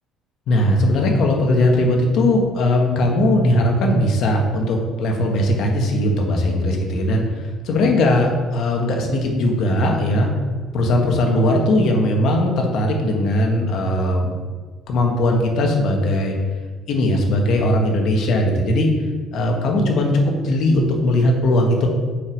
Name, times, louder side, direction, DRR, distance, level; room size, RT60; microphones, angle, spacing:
voice 1, 0.5-10.3 10.7-14.3 14.9-16.3 16.9-18.9 19.3-21.9, left 1 dB, 65° left, 1 dB, 1.6 m, -19 dB
6.9 x 4.8 x 5.4 m, 1.5 s
cardioid pair, 105°, 0 cm